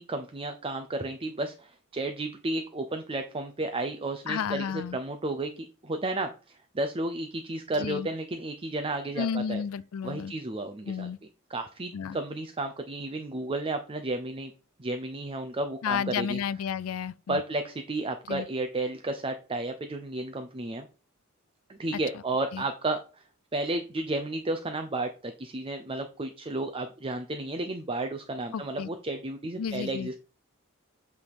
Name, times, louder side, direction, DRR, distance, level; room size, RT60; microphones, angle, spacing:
voice 1, 0.0-5.5 5.8-9.6 10.0-11.1 11.5-14.5 14.8-16.4 17.3-20.9 21.7-23.0 23.5-30.1, right 2 dB, 25° right, 0.6 m, -32 dB
voice 2, 4.3-5.0 7.8-8.1 9.2-10.3 10.9-11.2 11.9-12.2 15.8-17.4 18.3-18.5 22.5-22.6 28.5-28.9 29.6-30.1, left 7 dB, 85° left, 0.4 m, -32 dB
8.3 x 3.5 x 4.8 m
head